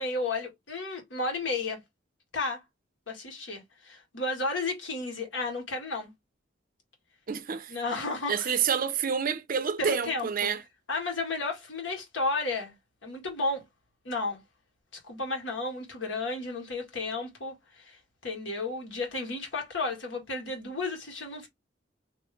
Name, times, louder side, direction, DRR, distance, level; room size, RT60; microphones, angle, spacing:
voice 1, 0.0-1.8 2.3-2.6 3.1-6.1 7.7-8.5 9.8-10.5 10.9-12.7 13.0-13.6 14.1-14.4 15.1-21.5, left 3 dB, 75° left, 1.6 m, -33 dB
voice 2, 7.3-7.7 8.3-10.6, right 7 dB, 45° right, 0.5 m, -28 dB
3.1 x 2.8 x 3.2 m
head